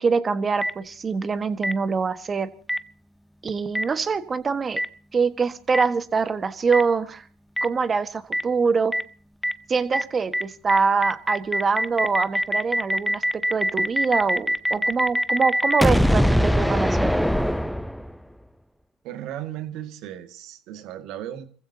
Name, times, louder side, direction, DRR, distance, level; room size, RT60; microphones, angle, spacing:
voice 1, 0.0-2.5 3.4-4.8 5.1-7.2 7.6-8.9 9.7-17.1, right 5 dB, 30° right, 12 dB, 1.5 m, -24 dB
Boom, 0.6-0.7 1.6-1.7 2.7-2.8 3.7-3.8 4.8-4.9 5.7-5.8 6.7-6.8 7.6-7.7 8.3-8.4 8.9-9.0 9.4-9.5 9.9-10.0 10.3-10.4 10.7-18.2, equal, ahead, 0.7 m, -22 dB
voice 2, 19.0-21.5, right 11 dB, 60° right, 9 dB, 2.0 m, -36 dB
29.5 x 15.5 x 2.9 m, 0.42 s
supercardioid pair, 85°, 0 cm